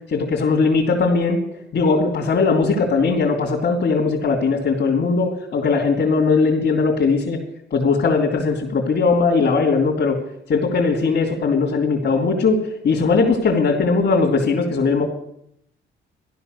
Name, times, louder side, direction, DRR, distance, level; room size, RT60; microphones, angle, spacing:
voice 1, 0.1-1.4 1.7-7.4 7.7-10.2 10.5-12.6 12.8-15.0, left 4 dB, 55° left, -3 dB, 3.2 m, -19 dB
15.0 x 11.5 x 6.7 m, 0.74 s
cardioid pair, 90°, 20 cm